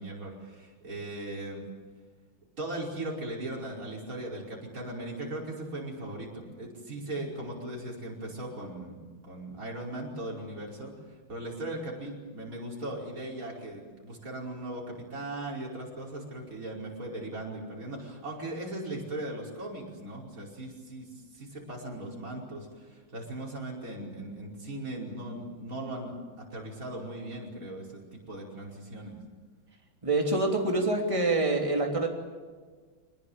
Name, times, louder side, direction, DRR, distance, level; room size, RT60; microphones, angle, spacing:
voice 1, 0.0-1.6 2.6-10.9 11.3-26.1 26.5-29.1, right 1 dB, 40° right, -3 dB, 5.6 m, -38 dB
voice 2, 30.0-32.1, right 2 dB, 15° right, 1 dB, 3.1 m, -26 dB
24.5 x 20.0 x 9.0 m, 1.5 s
omnidirectional pair, 2.3 m